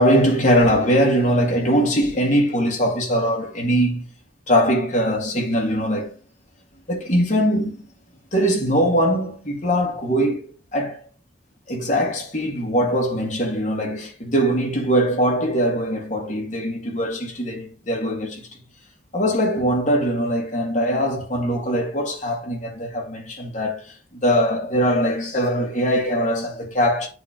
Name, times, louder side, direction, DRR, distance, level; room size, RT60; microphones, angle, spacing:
voice 1, 0.0-4.0 4.5-6.1 6.9-7.8 8.3-11.0 11.7-18.5 19.1-27.1, equal, 40° left, 1.9 m, -21 dB
8.2 x 3.1 x 5.1 m
head